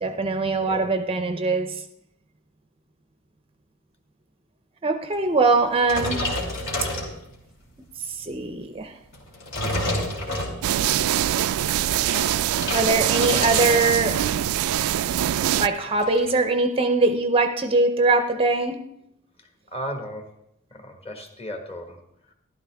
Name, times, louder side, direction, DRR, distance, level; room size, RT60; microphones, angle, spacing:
voice 1, 0.0-1.8 4.8-6.2 8.0-9.0 12.7-14.3 15.6-18.8, right 3 dB, 25° right, 8 dB, 0.6 m, -22 dB
sound 1, 5.8-7.6 8.1-8.4 9.1-10.9 11.8-14.0 14.3-14.6 14.9-15.0 15.2-16.3, left 1 dB, 60° left, 3.0 m, -29 dB
sound 2, 10.6-15.7, right 11 dB, 80° right, 0.3 m, -23 dB
voice 2, 19.4-20.3 20.7-22.0 22.3-22.4, equal, 30° left, 4 dB, 1.5 m, -36 dB
13.5 x 12.0 x 3.4 m, 0.78 s
head